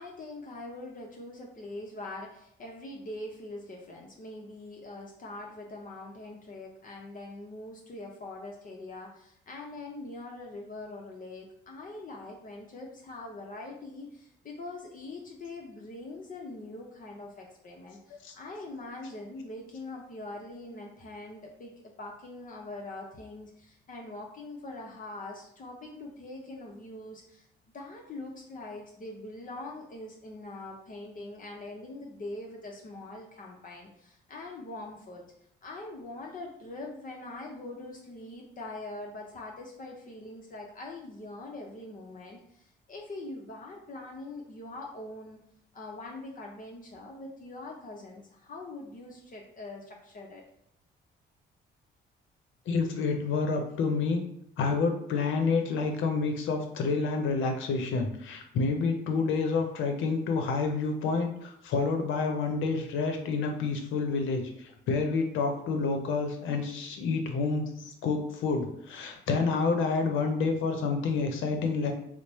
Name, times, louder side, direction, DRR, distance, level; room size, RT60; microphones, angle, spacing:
voice 1, 0.0-21.7 22.0-27.5 27.7-35.2 35.6-45.4 45.7-50.4, left 2 dB, 45° left, -1 dB, 0.7 m, -43 dB
voice 2, 52.7-54.2 54.6-71.9, left 4 dB, 80° left, 4 dB, 0.7 m, -29 dB
3.1 x 2.0 x 4.1 m, 0.76 s
cardioid pair, 90°, 20 cm